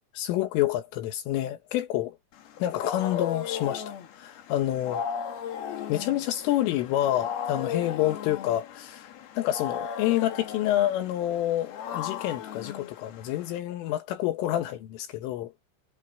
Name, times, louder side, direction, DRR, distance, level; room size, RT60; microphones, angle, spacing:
voice 1, 0.2-2.2 2.6-5.1 5.9-9.1 9.4-15.7, left 13 dB, 80° left, 3.8 m, -28 dB
Wild animals, 2.4-13.6, left 8 dB, 60° left, 3.4 m, -36 dB
omnidirectional pair, 5.9 m